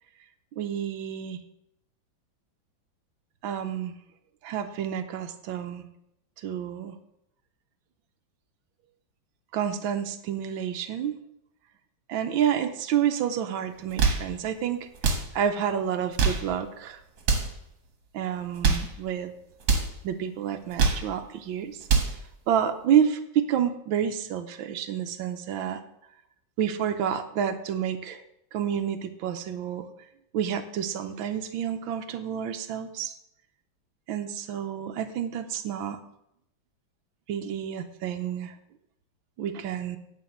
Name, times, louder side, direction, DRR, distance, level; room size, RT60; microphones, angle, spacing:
voice 1, 0.6-1.4 3.4-3.9 4.4-5.9 6.4-7.0 9.5-11.2 12.1-17.0 18.1-19.3 20.0-21.9 22.5-25.8 26.6-28.2 28.5-29.8 30.3-33.1 34.1-36.0 37.3-38.5 39.4-40.0, right 9 dB, 85° right, 7 dB, 1.6 m, -29 dB
sound 1, 13.8-14.3 14.9-15.3 16.0-16.5 17.2-17.6 18.4-18.9 19.6-19.9 20.6-21.1 21.7-22.2, right 5 dB, 70° right, 2.3 m, -24 dB
10.0 x 5.2 x 7.2 m, 0.79 s
omnidirectional pair, 2.1 m